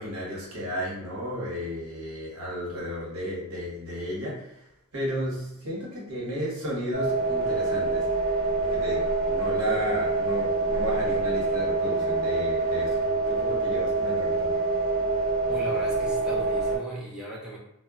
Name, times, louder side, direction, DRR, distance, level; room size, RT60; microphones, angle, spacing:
voice 1, 0.0-8.1 8.6-13.0 13.3-14.6, equal, 75° right, -5 dB, 1.0 m, -33 dB
sound 1, 6.9-16.8, right 3 dB, 60° right, 1.3 m, -26 dB
voice 2, 15.5-17.6, right 1 dB, 5° right, -6 dB, 0.5 m, -37 dB
2.1 x 2.1 x 3.5 m, 0.82 s
head